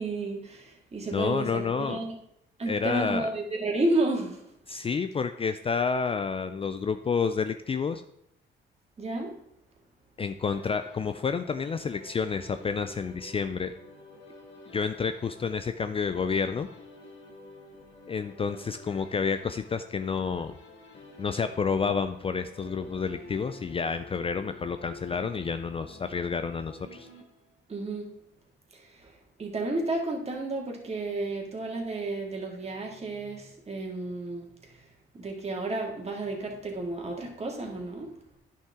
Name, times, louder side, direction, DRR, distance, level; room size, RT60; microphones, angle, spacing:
voice 1, 0.0-2.2 2.6-4.4 9.0-9.4 27.7-28.1 28.7-29.1 29.4-34.7 35.1-38.1, right 2 dB, 30° right, 0 dB, 2.0 m, -32 dB
voice 2, 1.1-2.0 2.7-3.3 4.7-8.0 10.2-13.7 14.7-16.7 18.1-20.6 21.2-27.1, left 5 dB, 30° left, 9 dB, 0.4 m, -29 dB
sound 1, 10.5-27.7, left 2 dB, 60° left, 2.0 m, -50 dB
10.0 x 5.7 x 3.6 m, 0.75 s
cardioid pair, 90°, 20 cm